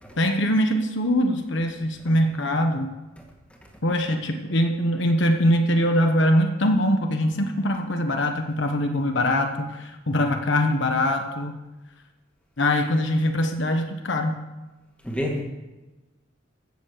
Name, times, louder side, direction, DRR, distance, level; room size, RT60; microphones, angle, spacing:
voice 1, 0.2-2.9 3.8-11.5 12.6-14.3, left 1 dB, 60° left, 5 dB, 1.1 m, -22 dB
voice 2, 15.0-15.4, left 1 dB, 5° left, 0 dB, 2.1 m, -28 dB
15.0 x 7.1 x 6.7 m, 1.1 s
head